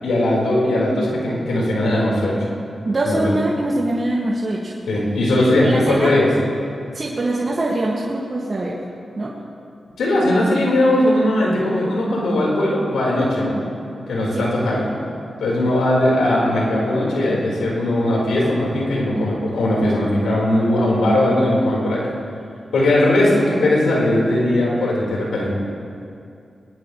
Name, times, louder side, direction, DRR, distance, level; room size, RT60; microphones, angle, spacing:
voice 1, 0.0-2.4 3.0-3.2 4.9-6.3 10.0-13.5 14.1-14.9 15.4-22.1 22.7-25.5, left 1 dB, 85° left, -4 dB, 4.9 m, -19 dB
voice 2, 2.9-4.7 5.6-6.1 6.9-8.8 9.2-9.3 14.3-14.5, right 1 dB, 45° right, -4 dB, 2.4 m, -23 dB
20.5 x 20.0 x 3.4 m, 2.5 s
cardioid pair, 45°, 0 cm